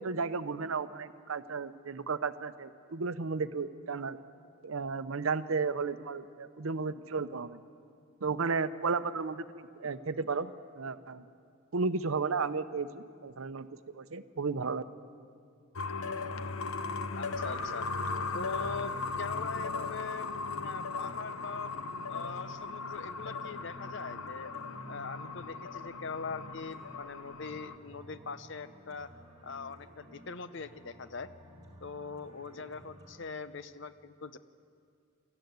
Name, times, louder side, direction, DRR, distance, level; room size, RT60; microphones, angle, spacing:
voice 1, 0.0-4.2 4.6-7.6 8.2-11.2 11.7-14.8, right 4 dB, 80° right, 12 dB, 0.7 m, -34 dB
sound 1, 15.8-27.8, left 3 dB, 90° left, 0.9 m, -37 dB
sound 2, 15.8-33.3, right 1 dB, 20° right, 4.0 m, -55 dB
voice 2, 17.2-17.9 18.3-21.7 22.1-24.5 24.9-29.1 29.4-31.3 31.8-34.4, left 5 dB, 60° left, 13 dB, 0.7 m, -42 dB
21.0 x 14.5 x 9.4 m, 2.4 s
head